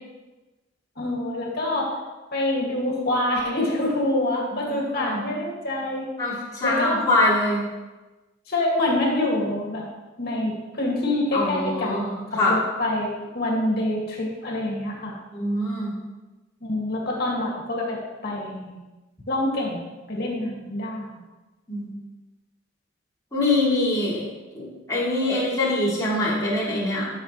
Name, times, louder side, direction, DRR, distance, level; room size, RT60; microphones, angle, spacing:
voice 1, 1.0-1.9 2.3-6.1 6.6-7.1 8.5-9.9 10.2-13.1 13.3-15.2 16.6-18.8 19.3-21.2, left 1 dB, 55° left, -3 dB, 2.3 m, -26 dB
voice 2, 4.6-5.3 6.2-7.6 11.3-12.5 15.3-15.9 21.7-21.9 23.3-27.1, left 1 dB, 20° left, -8 dB, 3.0 m, -24 dB
13.0 x 6.3 x 3.2 m, 1.2 s
head